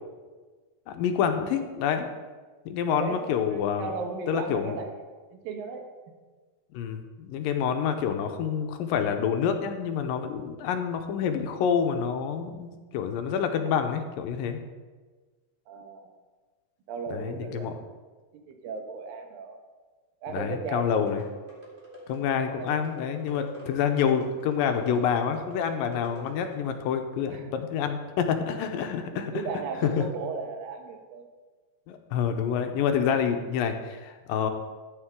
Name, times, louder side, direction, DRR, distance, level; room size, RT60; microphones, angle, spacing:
voice 1, 0.9-2.1 2.7-3.9 4.3-4.8 6.7-14.6 17.1-17.7 20.3-21.2 22.1-29.5 29.8-30.0 31.9-34.5, left 7 dB, 80° left, 6 dB, 2.4 m, -27 dB
voice 2, 2.9-3.2 3.5-4.9 5.3-5.8 15.7-16.1 16.9-17.9 18.5-19.6 20.2-21.0 22.6-22.9 27.3-27.5 29.1-31.3, right 4 dB, 75° right, 4 dB, 2.9 m, -36 dB
sound 1, 20.8-26.8, right 1 dB, 15° right, 1.9 m, -45 dB
13.0 x 8.9 x 3.7 m, 1.4 s
omnidirectional pair, 4.1 m